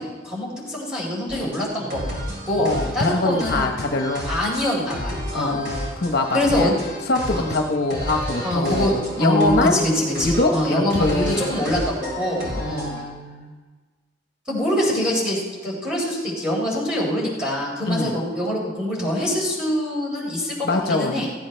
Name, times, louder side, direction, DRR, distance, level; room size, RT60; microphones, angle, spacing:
voice 1, 0.2-2.0 2.5-3.7 4.3-5.6 6.3-6.7 7.3-7.5 8.4-8.9 9.2-13.0 14.5-21.3, left 1 dB, 5° right, -5 dB, 4.2 m, -24 dB
sound 1, 1.3-13.0, equal, 55° right, 4.5 m, -32 dB
voice 2, 2.6-4.3 5.3-6.7 7.0-9.9 10.2-11.5 12.5-13.5 17.8-18.2 20.6-21.3, left 2 dB, 55° left, 3 dB, 1.0 m, -23 dB
16.5 x 15.5 x 3.4 m, 1.4 s
head